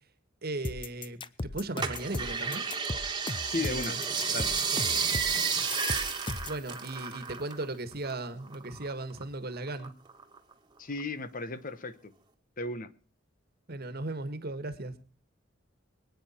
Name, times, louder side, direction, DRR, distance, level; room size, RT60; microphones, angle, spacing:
voice 1, 0.4-2.6 3.6-4.0 6.4-9.9 13.7-14.9, right 2 dB, 55° right, 11 dB, 1.6 m, -37 dB
sound 1, 0.6-6.6, left 2 dB, 25° left, 0.6 m, -37 dB
sound 2, 1.8-7.7 7.9-9.2 9.7-10.5 11.0-11.1, right 5 dB, 25° right, 1.6 m, -32 dB
voice 2, 3.5-4.0 4.3-4.5 10.8-12.1 12.6-12.9, left 3 dB, 45° left, 13 dB, 1.1 m, -35 dB
24.0 x 9.3 x 4.4 m, 0.39 s
head